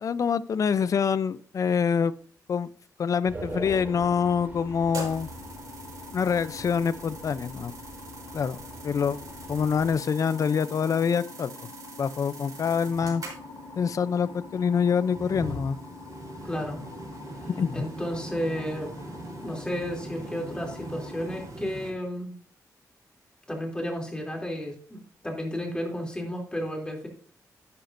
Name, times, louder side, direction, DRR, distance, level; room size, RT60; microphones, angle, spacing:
voice 1, 0.0-2.1 2.5-2.7 3.0-5.3 6.1-7.7 8.3-9.2 9.5-11.5 12.0-13.2 13.8-15.8 17.6-17.8, left 6 dB, 55° left, 16 dB, 0.5 m, -25 dB
sound 1, 3.3-10.0, right 1 dB, 30° right, 2.6 m, -43 dB
sound 2, 3.6-21.5, left 4 dB, 85° left, 4.4 m, -46 dB
sound 3, 4.9-21.9, right 2 dB, 65° right, 3.7 m, -43 dB
voice 2, 16.4-16.9 17.7-18.9 19.4-22.4 23.5-27.1, equal, 15° left, 1 dB, 2.9 m, -32 dB
11.0 x 10.0 x 2.6 m, 0.43 s
wide cardioid pair, 140°, 7 cm